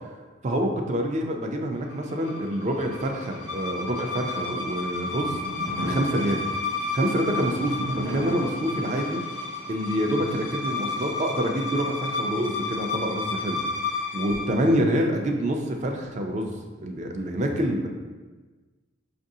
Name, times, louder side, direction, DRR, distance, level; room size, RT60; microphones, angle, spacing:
voice 1, 0.4-5.4 5.8-6.4 6.9-9.2 9.7-13.6 14.1-16.5 16.8-17.9, equal, 35° right, 3 dB, 0.4 m, -26 dB
sound 1, 1.9-14.6, left 3 dB, 65° left, 0.5 m, -32 dB
sound 2, 4.9-12.0, right 1 dB, 85° right, 0.6 m, -37 dB
5.3 x 2.5 x 2.7 m, 1.3 s
head